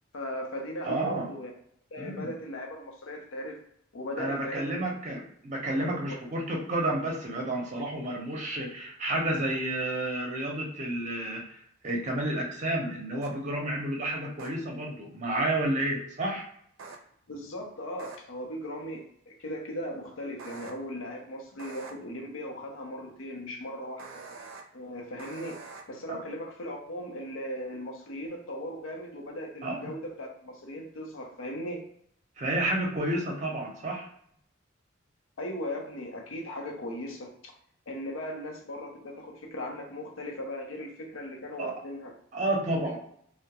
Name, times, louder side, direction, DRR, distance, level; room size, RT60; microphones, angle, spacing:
voice 1, 0.1-1.5 1.9-3.6 3.9-4.8 5.8-6.2 17.3-24.2 24.7-31.8 35.4-37.3 37.9-42.1 42.8-43.0, left 1 dB, 90° left, 1 dB, 0.6 m, -38 dB
voice 2, 0.9-1.3 2.0-2.3 4.2-16.4 26.1-26.2 29.6-29.9 32.4-34.1 41.6-41.7 42.3-43.0, right 1 dB, 40° right, 0 dB, 0.6 m, -31 dB
sound 1, 13.2-13.3 14.4-14.5 16.8-17.0 18.0-18.2 20.4-20.7 21.6-21.9 24.0-24.6 25.2-25.8, right 4 dB, 85° right, 0.5 m, -44 dB
2.3 x 2.1 x 2.8 m, 0.67 s
head